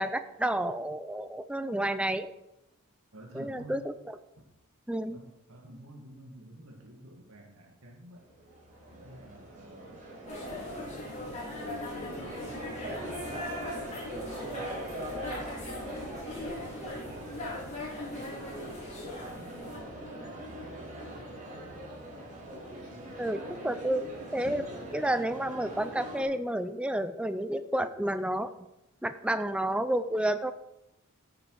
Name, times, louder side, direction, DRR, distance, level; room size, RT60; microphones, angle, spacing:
voice 1, 0.0-2.3 3.3-3.9 4.9-5.2 23.2-24.7 24.9-28.5 29.0-30.5, right 1 dB, 5° right, 11 dB, 0.5 m, -30 dB
voice 2, 3.1-3.9 4.4-4.5 5.1-8.3 8.9-10.0 10.6-15.6 16.3-18.6 19.1-19.9 20.4-21.4, right 1 dB, 75° right, 1 dB, 2.1 m, -52 dB
sound 1, 8.3-26.2, right 1 dB, 35° right, 4.4 m, -42 dB
sound 2, 10.3-19.8, left 1 dB, 30° left, 4.1 m, -40 dB
13.5 x 8.9 x 4.8 m, 0.88 s
head